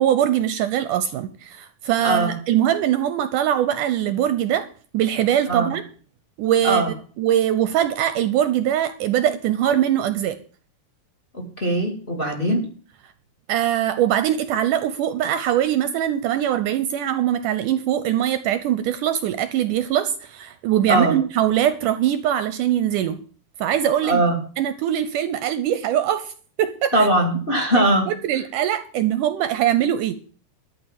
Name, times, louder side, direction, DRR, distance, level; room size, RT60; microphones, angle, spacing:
voice 1, 0.0-4.7 4.9-5.8 6.4-6.8 7.2-10.4 13.5-23.2 23.6-24.2 24.6-26.3 26.6-26.9 28.1-30.1, right 11 dB, 75° right, 12 dB, 2.1 m, -22 dB
voice 2, 2.0-2.3 5.5-5.7 6.6-6.9 11.3-12.7 20.9-21.2 24.0-24.4 26.9-28.1, right 1 dB, 20° left, 3 dB, 2.1 m, -20 dB
13.0 x 5.4 x 9.0 m, 0.41 s
omnidirectional pair, 4.1 m